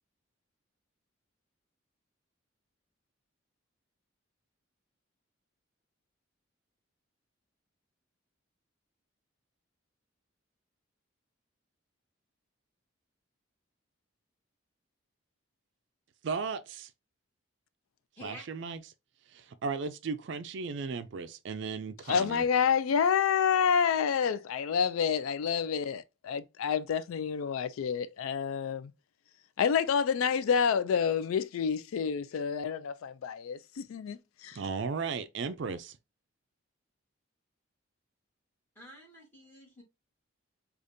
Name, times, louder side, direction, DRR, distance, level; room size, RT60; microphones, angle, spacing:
voice 1, 16.2-16.9 18.2-18.8 19.3-22.4 34.5-36.0, right 5 dB, 60° right, 0.4 m, -36 dB
voice 2, 18.2-18.5 38.7-39.8, equal, 10° left, 1.5 m, -49 dB
voice 3, 22.1-28.9 29.6-34.6, left 7 dB, 85° left, 0.3 m, -28 dB
5.0 x 2.4 x 2.6 m
head